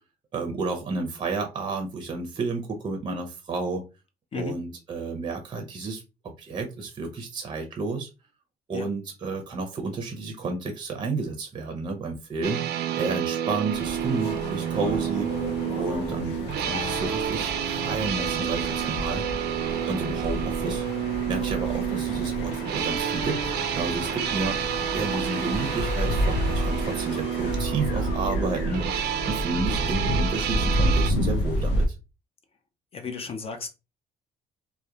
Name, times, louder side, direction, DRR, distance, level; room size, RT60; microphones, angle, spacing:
voice 1, 0.3-3.8 4.3-8.1 8.7-12.6 13.0-15.3 15.7-17.5 17.8-19.3 19.9-20.8 21.3-24.6 24.9-28.8 29.2-31.8, right 3 dB, 30° right, 0.6 m, -31 dB
sound 1, 12.4-31.1, right 10 dB, 75° right, 0.4 m, -29 dB
sound 2, 13.7-31.9, left 1 dB, 85° left, 0.7 m, -30 dB
voice 2, 32.9-33.7, left 4 dB, 35° left, 0.5 m, -33 dB
2.8 x 2.1 x 2.2 m
cardioid pair, 110°, 17 cm